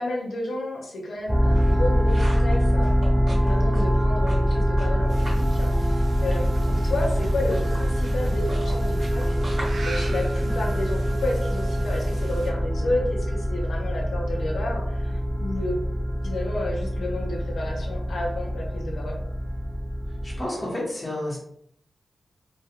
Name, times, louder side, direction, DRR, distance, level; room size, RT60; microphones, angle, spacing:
voice 1, 0.0-2.9 3.4-9.4 9.8-15.8 16.2-19.2, left 1 dB, 80° left, -1 dB, 0.6 m, -31 dB
sound 1, 1.2-5.5 5.8-11.1, right 1 dB, 55° right, 1.3 m, -42 dB
sound 2, 1.3-20.4, equal, 5° right, 0.4 m, -24 dB
sound 3, 5.1-12.5, right 3 dB, 75° right, 0.4 m, -44 dB
voice 2, 20.1-21.4, left 1 dB, 15° left, -5 dB, 1.0 m, -31 dB
2.3 x 2.2 x 2.8 m, 0.68 s
wide cardioid pair, 120°, 0 cm